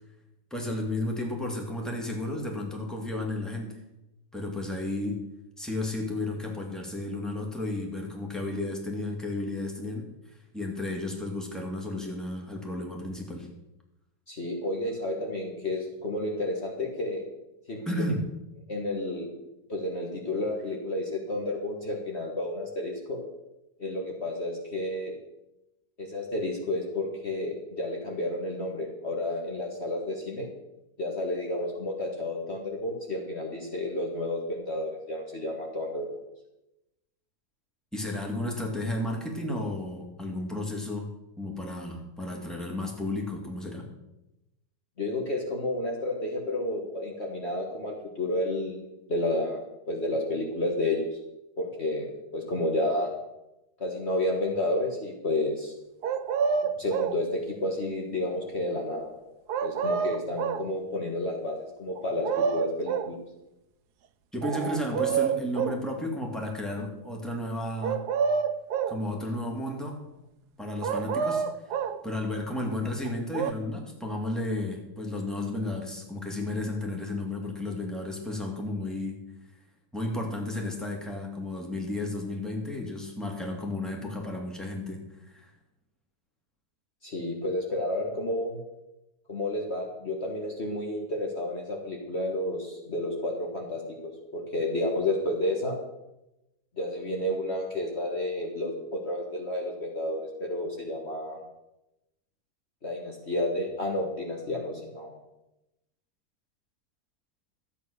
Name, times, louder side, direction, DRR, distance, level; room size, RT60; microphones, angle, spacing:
voice 1, 0.5-3.8 4.3-5.2 5.6-10.1 10.5-13.5 17.9-18.2 37.9-41.1 41.4-43.9 64.3-68.0 68.9-70.0 70.6-79.2 79.9-85.5, left 1 dB, ahead, 0 dB, 2.3 m, -33 dB
voice 2, 14.3-17.2 17.7-17.8 18.7-19.3 19.7-23.2 23.8-25.1 26.0-30.5 31.0-36.1 45.0-48.8 49.1-51.2 51.6-53.1 53.8-55.7 56.8-59.1 59.6-63.2 87.0-88.6 89.3-95.8 96.8-101.4 102.8-105.2, left 1 dB, 45° left, 0 dB, 1.8 m, -31 dB
sound 1, 56.0-57.2 59.5-60.7 62.0-63.1 64.4-65.8 67.8-69.0 70.8-72.0 73.0-73.5, right 6 dB, 90° right, 1.3 m, -28 dB
13.0 x 8.7 x 6.6 m, 0.93 s
omnidirectional pair, 1.7 m